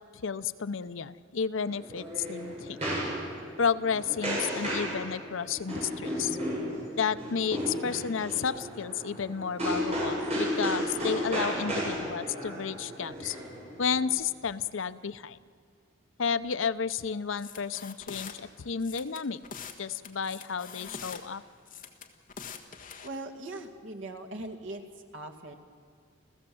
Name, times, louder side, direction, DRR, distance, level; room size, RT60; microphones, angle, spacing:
voice 1, 0.1-2.8 3.6-6.4 7.0-13.4 13.8-15.4 16.2-19.4 19.8-21.4, left 6 dB, 80° left, 14 dB, 0.6 m, -32 dB
sound 1, 1.6-14.1, equal, 35° right, 7.9 m, -34 dB
sound 2, 17.4-18.3 18.8-19.8 20.0-21.2 21.7-23.1, left 6 dB, 45° left, 1.6 m, -43 dB
voice 2, 23.0-24.8 25.1-25.5, right 2 dB, 75° right, 5 dB, 2.2 m, -40 dB
30.0 x 15.0 x 7.8 m, 2.3 s
head